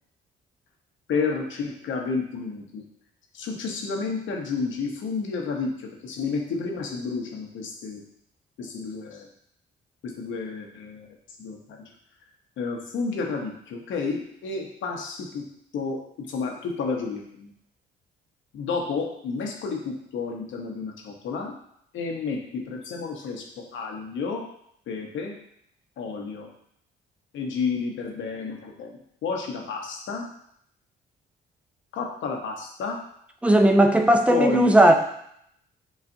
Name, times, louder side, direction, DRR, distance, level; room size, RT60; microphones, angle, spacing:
voice 1, 1.1-2.8 3.3-8.0 8.6-9.3 10.0-11.1 11.4-11.8 12.6-15.4 15.7-17.5 18.5-21.5 21.9-24.4 24.9-25.3 26.0-26.5 27.3-30.3 31.9-33.0 34.3-34.9, left 4 dB, 75° left, 2 dB, 0.9 m, -30 dB
voice 2, 33.4-34.9, right 1 dB, 5° right, 5 dB, 0.5 m, -17 dB
7.0 x 2.4 x 2.6 m, 0.72 s
cardioid pair, 90°, 20 cm